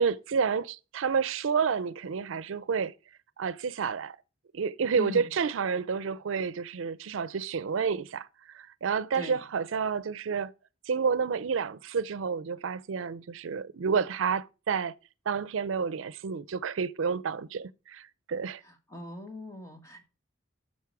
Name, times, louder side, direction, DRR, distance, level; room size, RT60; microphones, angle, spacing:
voice 1, 0.0-2.9 3.4-4.2 4.5-10.5 10.9-14.9 15.3-18.6, right 6 dB, 85° right, 0.5 m, -30 dB
voice 2, 4.9-5.3 9.1-9.4 18.6-20.0, left 2 dB, 15° left, 1.4 m, -41 dB
8.4 x 6.4 x 4.7 m
head